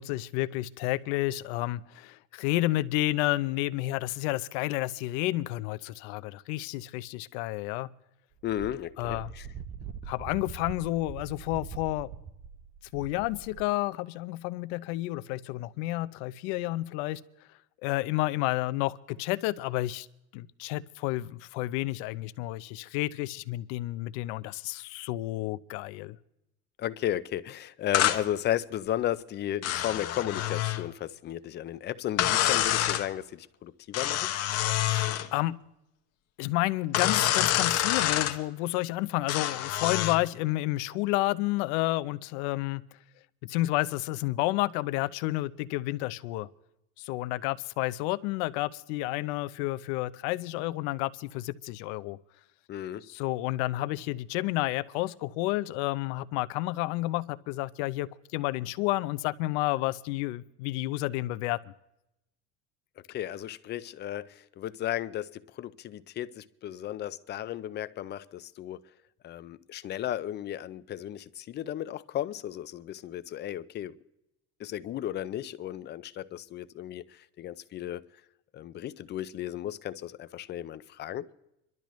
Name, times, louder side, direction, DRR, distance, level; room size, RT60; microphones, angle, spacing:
voice 1, 0.0-7.9 9.0-9.3 10.1-12.1 12.9-17.2 17.8-20.1 20.3-26.2 34.8-35.5 36.4-42.8 43.4-46.5 47.0-52.2 53.1-61.7, left 18 dB, 80° left, 0.7 m, -30 dB
voice 2, 8.4-9.5 26.8-34.3 52.7-53.0 63.1-68.8 69.2-74.0 74.6-78.1 78.5-81.3, left 12 dB, 30° left, 0.5 m, -34 dB
Wind, 8.4-13.7, right 7 dB, 20° right, 0.5 m, -43 dB
sound 1, 27.9-28.2 29.6-30.8 32.2-33.1 33.9-35.3 36.9-38.4 39.3-40.2, left 12 dB, 45° left, 1.1 m, -27 dB
26.0 x 12.0 x 3.1 m
cardioid pair, 145°, 34 cm